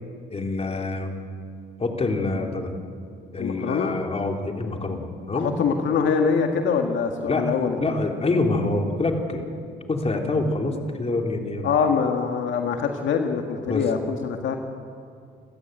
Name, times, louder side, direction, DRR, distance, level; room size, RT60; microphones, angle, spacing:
voice 1, 0.3-1.1 1.8-2.7 3.3-5.5 7.3-11.7 13.7-13.9, left 2 dB, 30° left, 2 dB, 3.5 m, -26 dB
voice 2, 3.4-4.0 5.3-7.9 11.6-14.6, left 6 dB, 70° left, 4 dB, 1.9 m, -24 dB
28.5 x 14.5 x 9.4 m, 2.3 s
cardioid pair, 90°, 20 cm